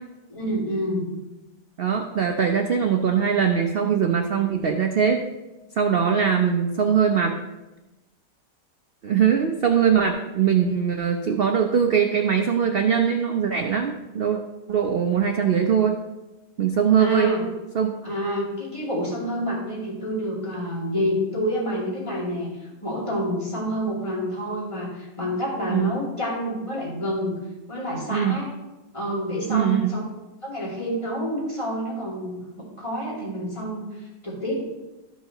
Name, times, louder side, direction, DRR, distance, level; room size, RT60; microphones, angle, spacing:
voice 1, 0.3-1.1 17.0-17.4 18.0-27.4 27.7-28.5 28.9-30.0 30.4-34.6, equal, 20° left, -5 dB, 2.5 m, -28 dB
voice 2, 1.8-5.2 5.8-7.4 9.0-14.4 14.7-16.0 16.6-17.3 17.7-17.9 25.7-25.9 28.1-28.4 29.5-30.0, right 7 dB, 85° right, 4 dB, 0.5 m, -21 dB
13.0 x 5.6 x 3.0 m, 1.1 s
omnidirectional pair, 1.8 m